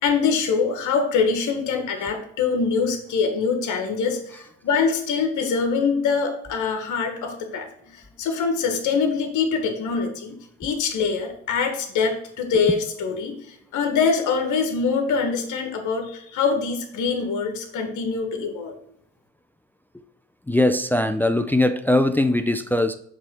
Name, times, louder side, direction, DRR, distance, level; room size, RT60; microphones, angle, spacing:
voice 1, 0.0-18.7, left 5 dB, 80° left, 5 dB, 1.4 m, -24 dB
voice 2, 20.5-23.0, left 1 dB, 5° left, 9 dB, 0.4 m, -20 dB
7.4 x 3.4 x 6.2 m, 0.70 s
cardioid pair, 90°, 30 cm